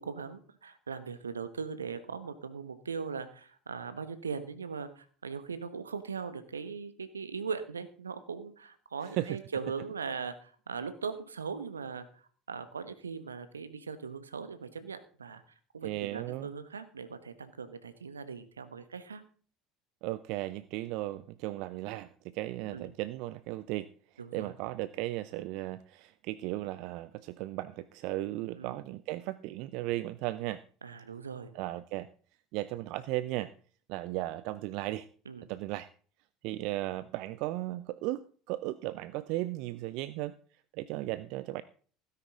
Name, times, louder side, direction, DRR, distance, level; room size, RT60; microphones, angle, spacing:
voice 1, 0.0-12.2 12.5-15.4 15.7-19.2 22.7-22.9 24.2-24.5 28.6-28.8 30.8-31.5 35.2-35.5, right 5 dB, 85° right, 12 dB, 1.3 m, -40 dB
voice 2, 15.8-16.5 20.0-23.9 24.3-30.6 31.5-32.1 32.5-33.5 33.9-35.1 35.5-35.9 36.4-38.2 38.5-40.3 40.7-41.6, right 17 dB, 60° right, 16 dB, 0.5 m, -36 dB
16.5 x 9.9 x 3.7 m, 0.43 s
figure-of-eight pair, 70°, 0 cm